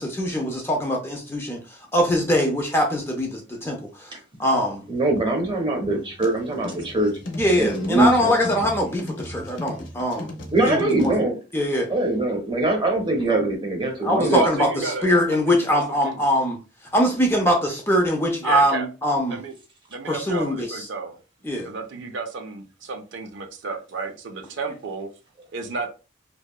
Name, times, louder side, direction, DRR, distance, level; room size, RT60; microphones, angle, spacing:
voice 1, 0.0-4.8 7.4-10.3 10.6-11.1 11.5-11.9 14.0-16.6 16.9-19.4 20.1-20.9 21.4-21.7, equal, 10° left, 0.4 m, -22 dB
voice 2, 4.9-7.2 7.6-8.3 10.5-11.4 11.9-14.4, right 2 dB, 25° right, 0.6 m, -22 dB
sound 1, 5.9-11.2, left 1 dB, 65° left, 0.6 m, -36 dB
voice 3, 14.3-16.2 18.4-18.9 19.3-19.5 19.9-21.2 21.6-25.1 25.5-25.9, right 4 dB, 60° right, 0.4 m, -31 dB
2.7 x 2.2 x 2.2 m
head